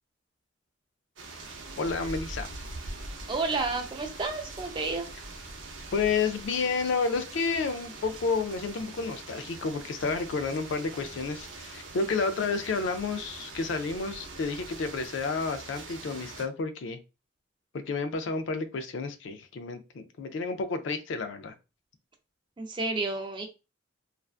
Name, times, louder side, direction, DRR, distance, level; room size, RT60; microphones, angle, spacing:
sound 1, 1.2-16.5, right 3 dB, 70° right, 0.6 m, -43 dB
voice 1, 1.8-2.5 5.9-17.0 17.7-21.5, left 4 dB, 65° left, 0.3 m, -30 dB
voice 2, 3.3-5.1 22.6-23.4, right 3 dB, 25° right, 0.4 m, -31 dB
2.5 x 2.2 x 2.3 m
head